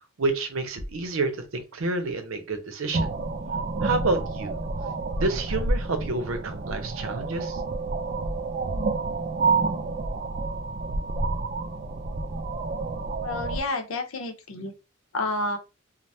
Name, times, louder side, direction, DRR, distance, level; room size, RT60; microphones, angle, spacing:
voice 1, 0.2-3.1 3.8-4.5 5.1-7.6, right 2 dB, 85° right, 7 dB, 0.7 m, -28 dB
sound 1, 2.9-13.6, right 3 dB, 40° right, 0.3 m, -29 dB
voice 2, 13.2-14.7 15.1-15.6, left 2 dB, 85° left, 6 dB, 0.7 m, -30 dB
3.2 x 2.1 x 2.6 m, 0.29 s
head